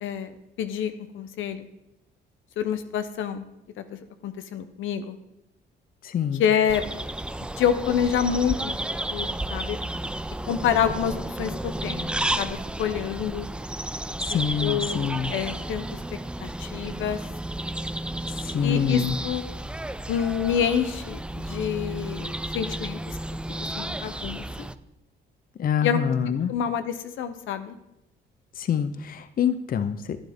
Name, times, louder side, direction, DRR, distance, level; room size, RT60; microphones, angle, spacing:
voice 1, 0.0-1.7 2.6-3.4 3.8-5.2 6.4-6.8 7.6-8.8 9.1-9.8 10.5-13.5 14.3-16.0 16.4-17.2 18.6-19.5 20.1-23.2 23.8-24.7 25.8-26.0 26.3-27.8, left 8 dB, 80° left, 10 dB, 0.8 m, -27 dB
voice 2, 6.0-6.4 14.2-15.3 18.4-19.2 25.6-26.5 28.6-30.2, left 8 dB, 45° left, 12 dB, 0.6 m, -26 dB
sound 1, 6.7-24.8, right 1 dB, 5° right, 0.3 m, -32 dB
11.0 x 9.2 x 3.6 m, 0.86 s
cardioid pair, 90°, 20 cm